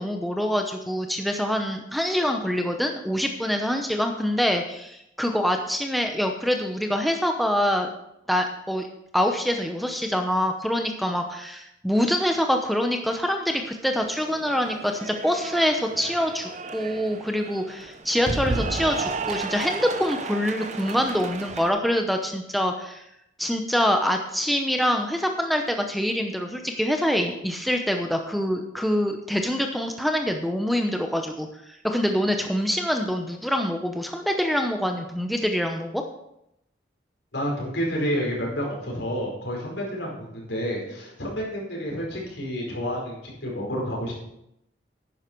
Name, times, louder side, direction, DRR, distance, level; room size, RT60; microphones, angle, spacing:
voice 1, 0.0-7.9 8.3-8.9 9.1-23.0 23.4-36.0, equal, ahead, 3 dB, 0.7 m, -25 dB
Cheering / Applause, 14.0-21.7, right 3 dB, 40° right, 0.7 m, -33 dB
voice 2, 37.3-44.1, equal, 75° left, -2 dB, 4.9 m, -29 dB
11.0 x 9.7 x 4.6 m, 0.80 s
head